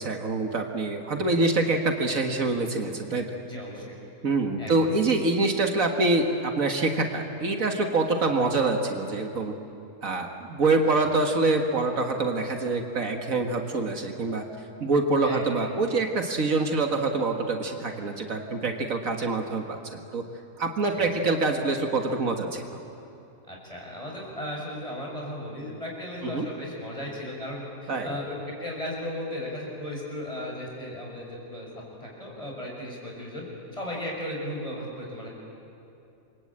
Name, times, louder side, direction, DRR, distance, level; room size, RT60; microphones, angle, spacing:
voice 1, 0.0-3.4 4.2-9.6 10.0-14.4 14.8-20.2 20.6-22.8 26.2-26.5 27.9-28.1, right 3 dB, 70° right, 4 dB, 2.1 m, -25 dB
voice 2, 3.5-3.9 4.6-4.9 11.0-11.2 15.2-15.5 20.9-21.1 23.5-31.7 32.0-33.4 33.7-35.3, left 1 dB, 25° left, -2 dB, 6.3 m, -36 dB
28.0 x 23.0 x 8.7 m, 2.7 s
omnidirectional pair, 1.5 m